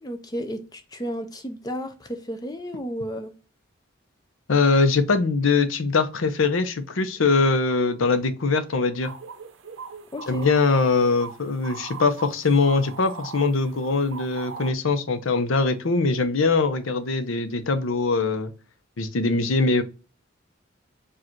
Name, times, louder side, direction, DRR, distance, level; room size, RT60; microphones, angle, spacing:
voice 1, 0.0-3.3 10.1-10.5, equal, 20° left, 0.4 m, -33 dB
voice 2, 4.5-9.1 10.3-18.5 19.0-19.8, left 4 dB, 90° left, 0.7 m, -22 dB
sound 1, 9.0-14.7, right 5 dB, 75° right, 0.6 m, -40 dB
4.9 x 2.5 x 4.4 m
head